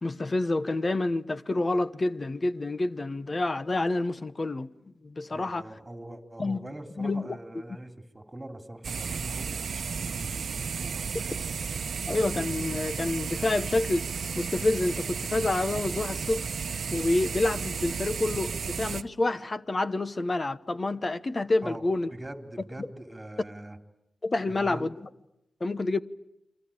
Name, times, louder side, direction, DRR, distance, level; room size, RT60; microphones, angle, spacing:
voice 1, 0.0-4.7 5.0-5.7 6.4-6.6 7.0-7.3 12.1-14.0 14.3-16.4 16.9-22.1 24.2-25.1 25.6-26.0, left 2 dB, 35° left, 1.1 m, -28 dB
voice 2, 5.3-11.5 21.6-21.9 22.1-23.8 24.5-24.9, right 1 dB, 15° right, 3.6 m, -43 dB
sound 1, 8.8-19.0, right 6 dB, 70° right, 0.9 m, -33 dB
29.0 x 23.0 x 8.8 m
cardioid pair, 75°, 0 cm